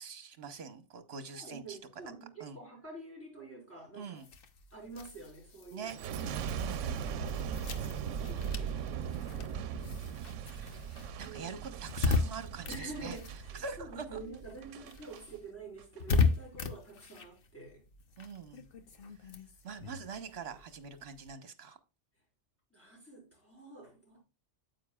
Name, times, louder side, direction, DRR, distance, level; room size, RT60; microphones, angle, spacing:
voice 1, 0.0-1.8 2.4-2.6 3.9-4.3 5.7-6.0 6.6-7.0 11.2-13.2 13.5-14.2 18.2-18.6 19.6-21.8, right 5 dB, 60° right, 1.3 m, -44 dB
voice 2, 1.3-4.2 4.7-5.9 7.7-10.9 11.2-11.5 12.7-17.8 22.7-24.2, right 3 dB, 10° left, 4.9 m, -48 dB
sound 1, 4.2-14.1 14.4-21.3, left 4 dB, 55° left, 1.0 m, -37 dB
Boom, 5.9-15.2 15.8-16.2, right 7 dB, 85° right, 0.9 m, -39 dB
9.2 x 8.1 x 2.3 m
omnidirectional pair, 1.2 m